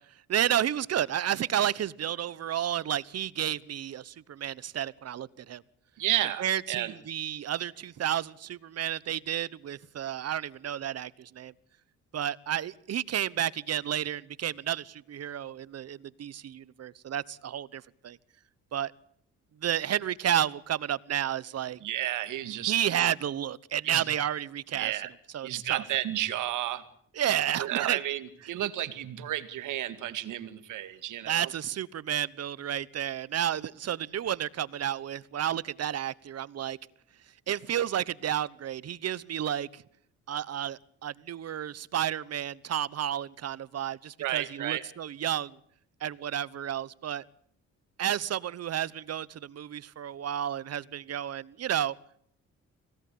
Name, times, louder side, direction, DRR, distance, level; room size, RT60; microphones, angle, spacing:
voice 1, 0.3-5.6 6.4-11.5 12.1-18.2 18.7-18.9 19.6-21.8 22.7-25.0 25.3-25.8 27.1-28.0 31.3-36.8 37.5-39.8 40.3-45.6 46.0-47.2 48.0-51.9, right 10 dB, 55° right, 1.0 m, -31 dB
voice 2, 6.0-6.9 21.8-22.8 23.8-24.0 24.8-25.1 25.4-26.8 27.6-31.5 44.2-44.8, right 13 dB, 80° right, 2.3 m, -32 dB
26.0 x 18.5 x 8.6 m
cardioid pair, 90°, 30 cm